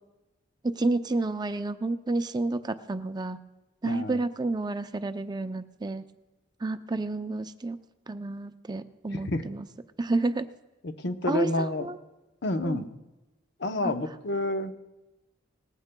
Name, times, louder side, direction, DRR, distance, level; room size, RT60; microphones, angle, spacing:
voice 1, 0.6-3.4 3.8-6.0 6.6-7.8 8.1-9.7 10.0-10.5 11.3-12.0 12.6-12.8 13.8-13.9, right 2 dB, 20° right, 9 dB, 0.5 m, -30 dB
voice 2, 3.8-4.2 9.1-9.4 10.8-11.9 12.4-12.9 13.6-14.7, left 2 dB, 60° left, 8 dB, 0.8 m, -29 dB
19.5 x 15.5 x 2.2 m, 1.0 s
head